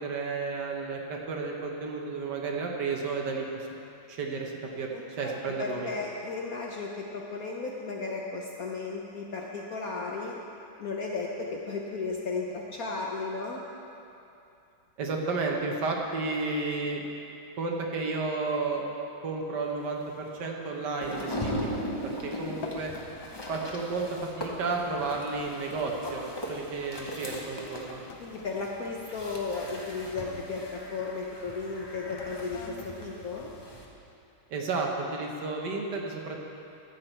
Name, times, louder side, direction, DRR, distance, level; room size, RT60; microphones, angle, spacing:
voice 1, 0.0-3.7 4.1-4.9 5.2-5.9 15.0-17.0 17.6-18.9 19.2-22.9 23.5-28.0 34.5-36.4, right 3 dB, 60° right, 0 dB, 1.5 m, -32 dB
voice 2, 4.9-5.3 5.6-10.4 10.8-13.6 28.2-33.5, left 4 dB, 60° left, -1 dB, 1.0 m, -35 dB
sound 1, 19.6-22.2 22.5-23.0 23.4-23.7 24.4-24.6 25.3-31.2 31.9-34.3 34.9-35.0, left 5 dB, 80° left, 1.6 m, -50 dB
sound 2, 21.0-33.8, equal, 25° left, 0.5 m, -39 dB
13.0 x 8.0 x 4.4 m, 2.7 s
omnidirectional pair, 2.2 m